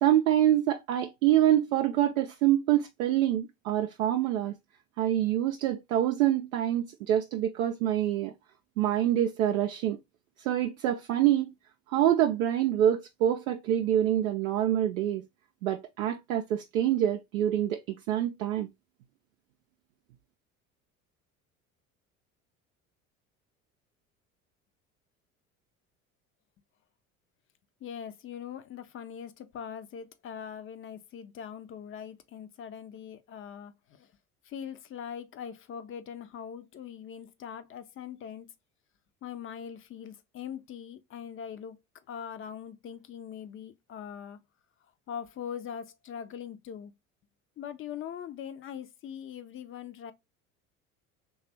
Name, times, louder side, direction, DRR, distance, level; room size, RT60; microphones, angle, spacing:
voice 1, 0.0-4.5 5.0-8.3 8.8-10.0 10.4-11.5 11.9-15.2 15.6-18.7, right 11 dB, 70° right, 0.5 m, -26 dB
voice 2, 27.8-34.1 34.4-38.5 39.2-44.4 45.1-46.9 47.6-50.1, left 8 dB, 30° left, 0.6 m, -41 dB
3.2 x 2.4 x 4.2 m
figure-of-eight pair, 65°, 42 cm